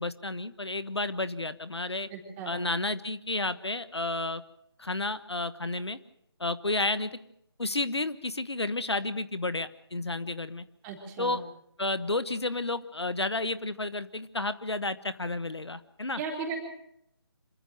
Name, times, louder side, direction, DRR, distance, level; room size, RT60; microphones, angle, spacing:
voice 1, 0.0-2.1 2.4-4.4 4.8-6.0 6.4-7.3 7.6-10.6 11.2-11.4 11.8-16.2, left 2 dB, 80° left, 13 dB, 1.3 m, -31 dB
voice 2, 2.1-2.6 10.8-11.4 16.2-16.6, right 5 dB, 15° right, 0 dB, 4.0 m, -36 dB
26.5 x 14.5 x 7.6 m, 0.77 s
figure-of-eight pair, 150°, 14 cm